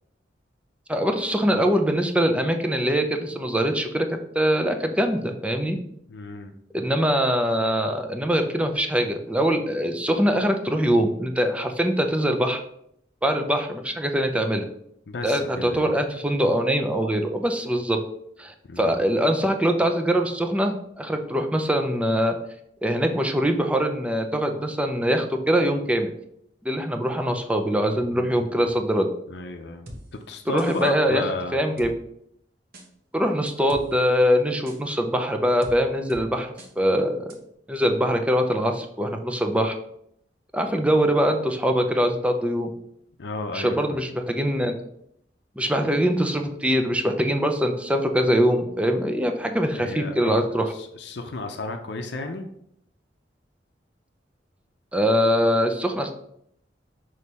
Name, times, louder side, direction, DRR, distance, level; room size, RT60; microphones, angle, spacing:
voice 1, 0.9-5.8 6.7-12.6 13.2-14.6 15.2-18.0 18.4-22.4 22.8-26.1 26.6-29.1 30.5-31.9 33.1-36.5 36.8-37.3 37.7-39.8 40.5-42.7 43.5-44.7 45.6-50.7 54.9-56.1, equal, 5° right, 5 dB, 0.6 m, -23 dB
voice 2, 6.1-6.5 15.1-15.9 18.6-19.0 28.0-28.5 29.3-29.9 30.3-31.6 43.2-44.0 49.8-52.5, left 2 dB, 70° left, 5 dB, 0.6 m, -33 dB
sound 1, 29.9-30.0 30.6-30.9 31.8-31.9 32.7-32.9 33.5-33.9 34.7-34.8 35.6-35.8 36.1-36.2 36.6-36.7 37.3-37.4, equal, 55° right, 1.2 m, -40 dB
6.3 x 3.2 x 5.4 m, 0.73 s
head